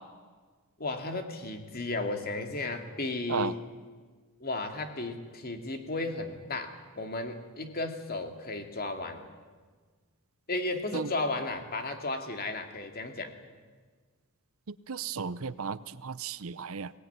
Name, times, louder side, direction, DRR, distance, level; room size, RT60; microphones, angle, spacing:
voice 1, 0.8-3.6 4.4-9.2 10.5-13.3, left 2 dB, 45° left, 6 dB, 2.4 m, -34 dB
voice 2, 14.9-16.9, right 5 dB, 65° right, 16 dB, 0.7 m, -34 dB
23.0 x 18.5 x 9.5 m, 1.5 s
head